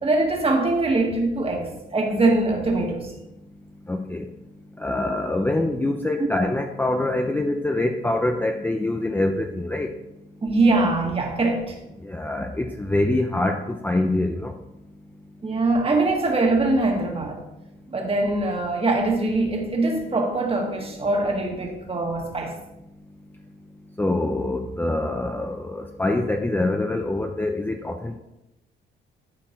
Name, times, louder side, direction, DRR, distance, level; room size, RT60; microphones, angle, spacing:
voice 1, 0.0-3.1 10.4-11.7 15.4-17.4 17.9-22.5, right 2 dB, 30° right, 1 dB, 1.9 m, -22 dB
voice 2, 3.9-4.3 4.8-9.9 12.0-14.5 24.0-28.2, left 2 dB, 10° left, 4 dB, 0.6 m, -25 dB
11.5 x 4.4 x 4.4 m, 0.92 s
cardioid pair, 90°, 20 cm